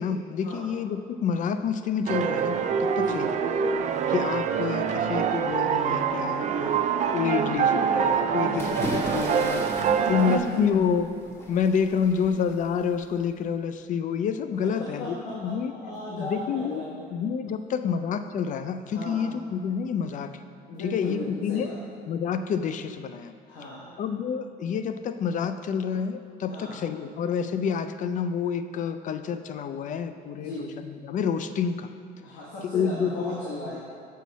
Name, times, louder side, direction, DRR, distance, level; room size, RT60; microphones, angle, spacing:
voice 1, 0.0-3.4 4.1-6.8 7.1-9.6 10.1-11.1 11.5-15.7 16.2-16.8 17.1-20.3 20.8-21.7 22.1-23.3 24.0-31.9 32.6-33.4 33.7-33.8, left 7 dB, 50° left, 9 dB, 0.4 m, -28 dB
sound 1, 2.1-10.4, right 7 dB, 45° right, 0.4 m, -25 dB
voice 2, 8.3-9.1 9.9-10.7 14.6-17.1 18.9-19.3 20.7-21.8 23.5-23.9 26.5-26.8 30.4-30.7 32.2-33.8, left 1 dB, 90° left, -6 dB, 1.3 m, -36 dB
sound 2, 8.6-13.4, equal, 15° left, 1.2 m, -39 dB
7.2 x 5.6 x 4.1 m, 2.2 s
cardioid pair, 110°, 17 cm